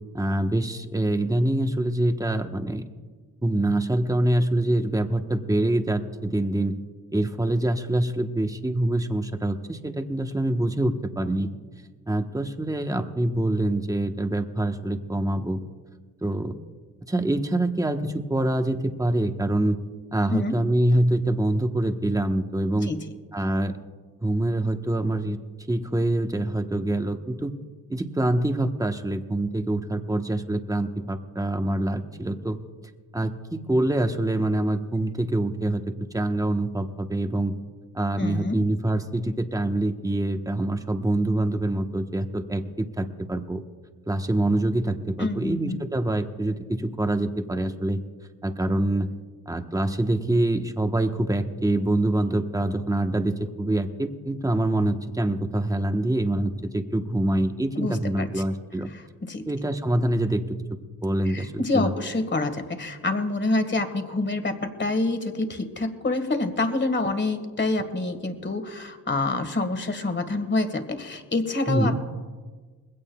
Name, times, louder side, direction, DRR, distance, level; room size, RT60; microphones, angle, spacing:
voice 1, 0.1-2.8 3.4-6.8 7.1-11.5 12.1-15.6 16.2-16.6 17.1-19.8 20.1-22.9 23.3-23.7 24.2-25.4 25.7-27.5 27.9-32.6 33.1-35.8 36.1-37.6 37.9-43.6 44.1-48.0 48.4-49.1 49.5-58.9 59.5-60.4 61.0-61.9 71.7-72.0, right 1 dB, 10° right, 6 dB, 1.1 m, -25 dB
voice 2, 38.2-38.6 45.2-45.8 57.8-58.4 58.9-59.5 61.3-72.0, left 2 dB, 30° left, 8 dB, 1.8 m, -27 dB
21.0 x 16.5 x 2.3 m, 1.4 s
cardioid pair, 70°, 37 cm